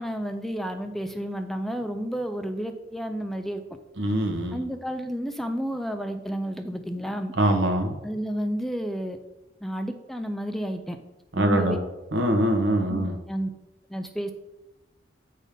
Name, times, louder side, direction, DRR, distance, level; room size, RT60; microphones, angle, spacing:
voice 1, 0.0-3.6 4.5-7.3 8.0-9.2 9.6-11.0 11.4-11.8 12.9-13.5 13.9-14.3, equal, ahead, 7 dB, 0.4 m, -31 dB
voice 2, 4.0-4.6 7.4-8.0 11.3-11.8 12.1-13.2, right 1 dB, 75° right, 3 dB, 1.3 m, -23 dB
8.5 x 4.1 x 5.3 m, 0.99 s
head